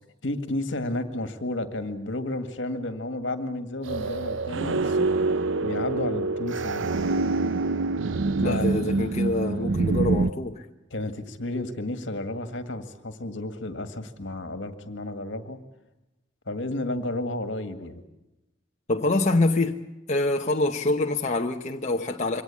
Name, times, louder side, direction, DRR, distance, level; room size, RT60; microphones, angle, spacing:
voice 1, 0.2-5.1 5.6-6.8 8.4-8.6 10.9-15.6 16.5-18.0, left 1 dB, 70° left, 1.9 m, -32 dB
sound 1, 3.8-10.3, right 3 dB, 75° right, 0.7 m, -26 dB
voice 2, 8.4-10.6 18.9-19.8 20.1-22.4, left 2 dB, 35° left, 0.9 m, -25 dB
23.5 x 18.0 x 8.5 m
head